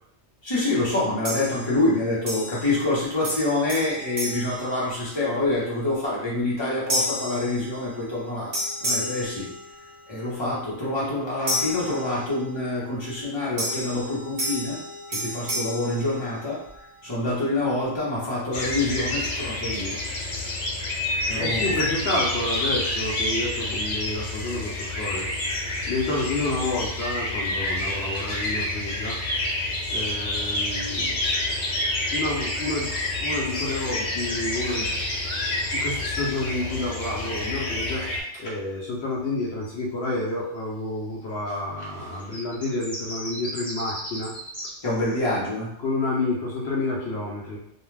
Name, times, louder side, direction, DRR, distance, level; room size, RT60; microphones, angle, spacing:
voice 1, 0.4-9.5 10.1-14.8 15.1-20.0 21.3-21.8 44.8-45.7, left 2 dB, 25° left, -7 dB, 0.9 m, -26 dB
sound 1, 1.2-1.9 2.3-3.0 3.2-5.4 5.9-6.2 6.9-8.2 8.5-10.2 11.5-12.6 13.6-16.8, equal, 40° right, 0.9 m, -31 dB
sound 2, 18.5-38.2, left 2 dB, 90° left, 1.1 m, -28 dB
voice 2, 21.3-25.3 25.9-29.2 29.9-31.1 32.1-35.0 35.7-44.3 45.8-47.6, left 2 dB, 70° left, -4 dB, 0.9 m, -29 dB
sound 3, 32.4-35.8 39.6-39.7 42.1-45.2, equal, ahead, 0.6 m, -36 dB
2.5 x 2.3 x 3.2 m, 0.72 s
omnidirectional pair, 1.2 m